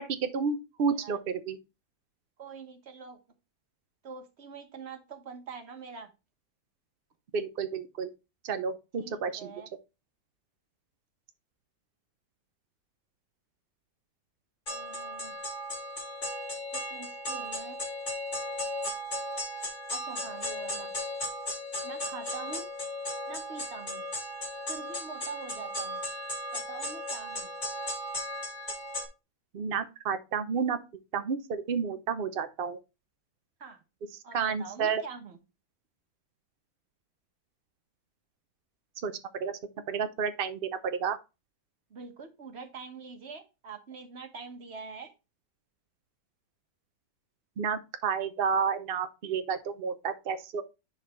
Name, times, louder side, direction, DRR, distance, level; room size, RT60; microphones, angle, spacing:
voice 1, 0.0-1.6 7.3-8.1 8.4-9.5 29.5-30.8 31.1-32.8 34.3-35.0 39.0-39.1 39.4-39.5 39.9-41.2 47.6-50.6, right 6 dB, 85° right, 0.5 m, -31 dB
voice 2, 0.9-1.2 2.4-3.2 4.0-6.1 9.0-9.7 14.7-15.4 16.7-17.8 19.9-20.9 21.8-22.7 23.3-24.0 24.7-26.0 26.5-27.5 33.6-33.8 34.2-35.4 41.9-45.1, right 5 dB, 40° right, 1.3 m, -44 dB
sound 1, 14.7-29.1, left 1 dB, 30° left, 2.3 m, -36 dB
10.5 x 4.1 x 3.1 m
omnidirectional pair, 2.0 m